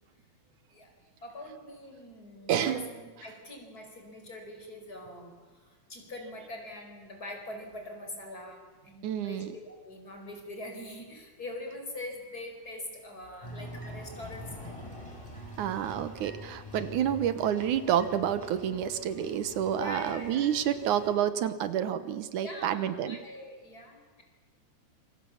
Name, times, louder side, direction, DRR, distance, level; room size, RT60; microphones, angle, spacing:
voice 1, 1.2-14.9 19.8-20.4 21.1-21.2 22.4-24.2, left 1 dB, 30° left, 3 dB, 5.0 m, -43 dB
voice 2, 2.5-2.9 9.0-9.5 15.6-23.2, right 9 dB, 80° right, 12 dB, 2.6 m, -29 dB
sound 1, 13.4-21.1, left 1 dB, 10° left, 4.7 m, -45 dB
27.5 x 25.0 x 7.2 m, 1.3 s
omnidirectional pair, 3.5 m